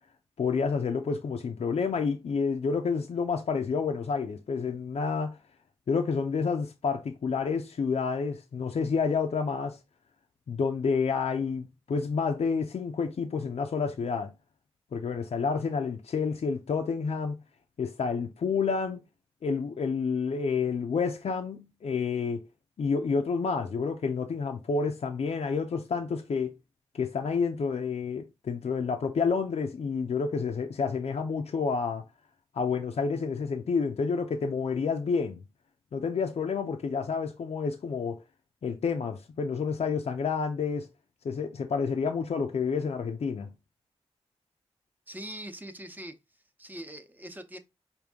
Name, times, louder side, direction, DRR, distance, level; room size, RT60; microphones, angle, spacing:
voice 1, 0.4-5.4 5.9-9.8 10.5-14.3 14.9-17.4 17.8-19.0 19.4-22.5 22.8-26.6 26.9-32.0 32.5-35.4 35.9-38.2 38.6-40.9 41.2-43.5, left 5 dB, 80° left, 0.5 m, -29 dB
voice 2, 45.1-46.1 46.6-47.6, right 1 dB, 15° right, 0.8 m, -42 dB
5.2 x 2.6 x 3.5 m
cardioid pair, 60°, 11 cm